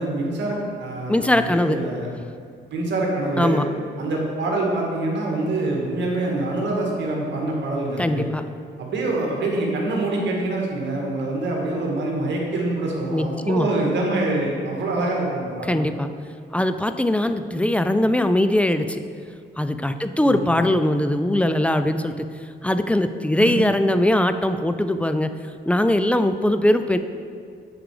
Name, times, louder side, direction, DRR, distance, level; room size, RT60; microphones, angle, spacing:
voice 1, 0.0-2.1 2.7-3.6 4.0-8.3 8.8-15.8 20.2-20.5 23.4-23.5, right 2 dB, 65° right, -1 dB, 1.8 m, -25 dB
voice 2, 1.1-1.8 3.4-3.7 8.0-8.4 13.1-13.7 15.6-16.1 16.5-19.0 19.6-22.3 22.6-25.3 25.7-27.0, left 1 dB, 5° left, 9 dB, 0.3 m, -21 dB
7.7 x 4.8 x 4.8 m, 2.2 s
cardioid pair, 90°, 20 cm